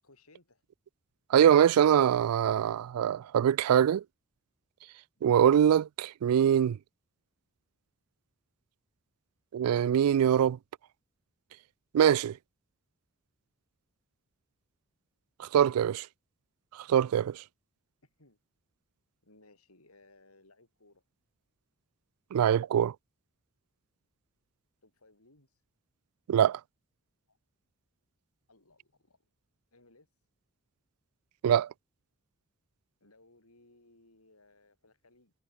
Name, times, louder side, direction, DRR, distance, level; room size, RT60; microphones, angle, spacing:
voice 1, 0.0-0.6 5.2-5.6 15.7-15.8 18.0-18.4 19.2-21.0 24.8-25.6 27.3-27.4 28.5-29.2 29.7-30.1 33.0-35.3, left 2 dB, 85° left, 8.0 m, -62 dB
voice 2, 1.3-4.0 5.2-6.8 9.5-10.6 11.9-12.4 15.4-15.9 16.9-17.4 22.3-22.9 26.3-26.6 31.4-31.7, right 9 dB, 90° right, 0.3 m, -23 dB
head